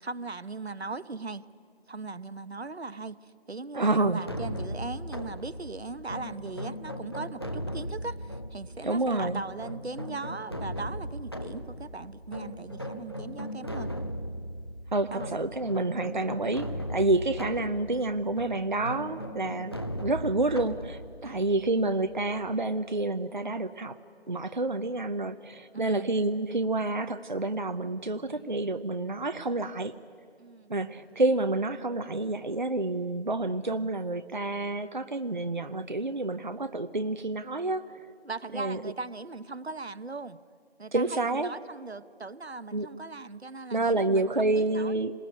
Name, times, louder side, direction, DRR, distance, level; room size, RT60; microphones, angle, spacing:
voice 1, 0.0-1.5 1.9-13.9 15.1-15.3 19.6-19.7 21.2-21.5 25.7-26.1 30.4-30.7 38.2-40.4 40.8-45.0, right 3 dB, 70° right, 15 dB, 1.0 m, -39 dB
voice 2, 3.7-4.2 8.8-9.4 14.9-24.0 24.3-29.9 30.7-38.1 38.5-38.9 40.9-41.5 42.7-42.9 43.7-45.1, right 2 dB, 45° right, 10 dB, 0.7 m, -28 dB
sound 1, 4.0-22.7, equal, 25° left, 0.7 m, -38 dB
sound 2, 27.3-27.4 28.2-28.7 29.1-29.2 29.5-29.8 30.7-31.6 32.0-32.8 33.4-33.8 35.4-35.8 37.0-37.2 37.6-37.7, right 1 dB, 5° right, 5.1 m, -59 dB
26.0 x 20.5 x 9.7 m, 2.4 s
figure-of-eight pair, 165°, 34 cm